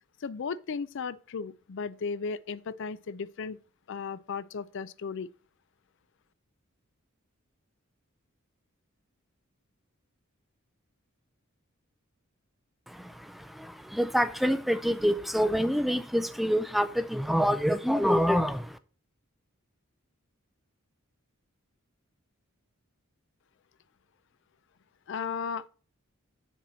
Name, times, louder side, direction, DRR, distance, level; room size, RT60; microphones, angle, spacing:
voice 1, 0.2-3.6 3.9-5.3 25.1-25.7, left 5 dB, 60° left, 0.4 m, -35 dB
voice 2, 12.9-18.8, equal, ahead, 0.4 m, -27 dB
7.1 x 4.2 x 6.0 m
head